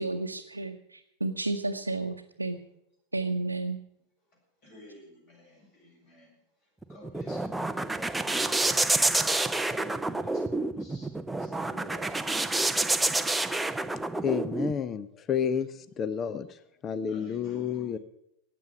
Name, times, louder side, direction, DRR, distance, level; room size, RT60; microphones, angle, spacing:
voice 1, 0.0-2.6 3.1-3.8, right 2 dB, 85° right, 1 dB, 0.8 m, -32 dB
voice 2, 4.6-6.3 6.9-12.7 17.1-18.0, left 1 dB, 45° left, 0 dB, 7.7 m, -52 dB
sound 1, 6.8-14.7, right 2 dB, 5° right, 0.6 m, -28 dB
voice 3, 14.2-15.7 16.0-16.5 16.8-18.0, left 8 dB, 25° left, 15 dB, 0.7 m, -30 dB
15.0 x 9.4 x 8.6 m, 0.82 s
figure-of-eight pair, 90°, 0 cm